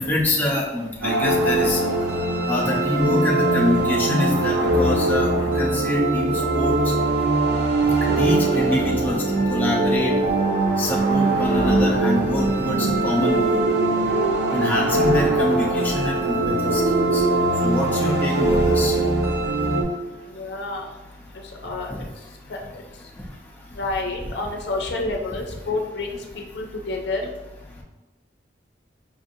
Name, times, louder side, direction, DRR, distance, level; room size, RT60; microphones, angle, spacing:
voice 1, 0.0-1.8 2.5-5.3 5.6-6.7 8.2-9.2 9.5-10.1 10.8-13.6 14.5-16.4 16.6-16.8 17.1-17.2 17.6-18.9, left 1 dB, 10° left, -4 dB, 0.5 m, -25 dB
sound 1, 1.0-19.8, right 2 dB, 75° right, 0.7 m, -21 dB
voice 2, 20.3-20.9 21.6-21.9 22.5-22.6 23.8-27.3, left 2 dB, 70° left, 2 dB, 0.5 m, -29 dB
5.1 x 2.5 x 2.6 m, 1.1 s
head